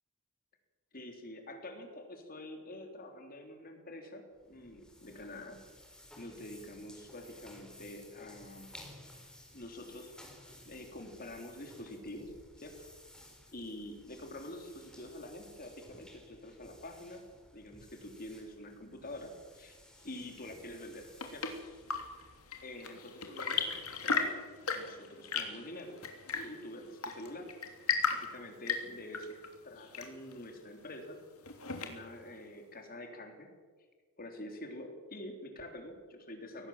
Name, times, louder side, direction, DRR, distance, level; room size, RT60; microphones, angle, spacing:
voice 1, 0.9-5.6 6.2-8.7 9.5-10.1 10.6-12.3 12.6-12.9 13.5-17.2 17.5-19.8 20.0-21.6 22.6-24.3 24.7-26.0 26.4-27.5 28.1-29.4 29.6-31.2 31.8-33.5 34.2-36.7, left 1 dB, 40° left, 4 dB, 3.6 m, -46 dB
sound 1, 4.3-22.8, left 1 dB, 5° left, 4.3 m, -56 dB
Chirp tweet / Engine / Tap, 20.8-32.3, left 5 dB, 70° left, 3.0 m, -37 dB
23.5 x 18.5 x 7.4 m, 1.5 s
head